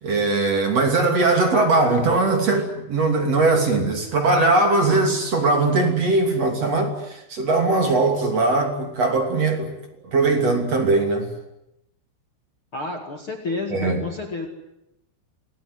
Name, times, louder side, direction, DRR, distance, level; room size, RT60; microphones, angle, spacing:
voice 1, 0.0-9.7 10.1-11.3 13.7-14.0, right 3 dB, 35° right, 4 dB, 3.3 m, -20 dB
voice 2, 12.7-14.5, left 3 dB, 50° left, 3 dB, 1.6 m, -30 dB
27.5 x 19.0 x 9.6 m, 0.87 s
omnidirectional pair, 5.9 m